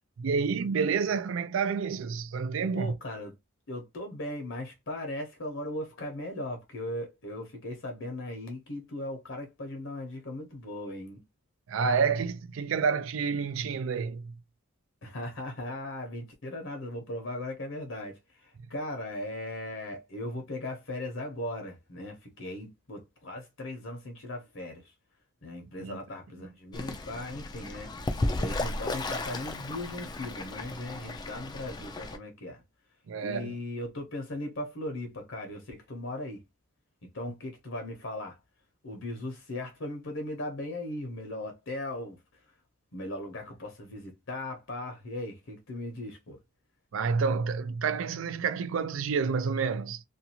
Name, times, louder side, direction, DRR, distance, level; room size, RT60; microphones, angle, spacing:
voice 1, 0.2-2.9 11.7-14.3 25.8-26.0 33.1-33.5 46.9-50.0, right 5 dB, 80° right, 0.4 m, -29 dB
voice 2, 2.7-3.4 3.7-11.2 15.0-24.9 25.4-27.9 28.4-32.6 33.2-36.4 37.1-38.4 38.8-42.4 42.9-46.4, left 1 dB, 70° left, 0.9 m, -38 dB
Fowl / Bird, 26.7-32.2, left 2 dB, 20° left, 0.3 m, -34 dB
2.6 x 2.3 x 2.8 m
head